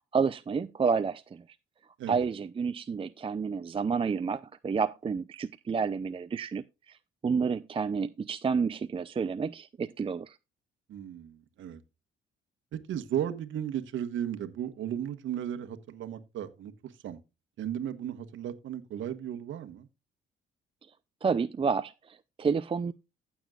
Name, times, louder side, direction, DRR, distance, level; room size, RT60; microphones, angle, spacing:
voice 1, 0.1-1.4 2.1-7.0 7.2-10.4 21.2-22.9, right 5 dB, 25° right, 0.5 m, -30 dB
voice 2, 10.9-11.8 12.7-17.2 17.6-19.9, right 10 dB, 75° right, 1.3 m, -35 dB
15.5 x 7.1 x 2.4 m
cardioid pair, 90°, 20 cm